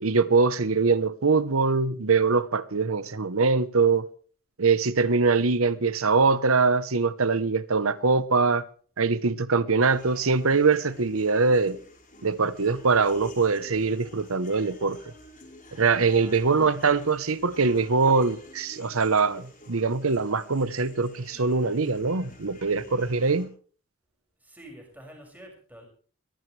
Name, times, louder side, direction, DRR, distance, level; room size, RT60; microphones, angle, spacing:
voice 1, 0.0-4.1 4.6-8.6 9.0-11.8 12.2-15.0 15.8-23.5, right 4 dB, 75° right, 1.0 m, -23 dB
sound 1, 9.8-23.5, left 1 dB, 40° left, 5.5 m, -50 dB
voice 2, 16.1-16.4 24.4-25.9, right 1 dB, 10° right, 6.3 m, -48 dB
22.0 x 15.5 x 3.3 m
head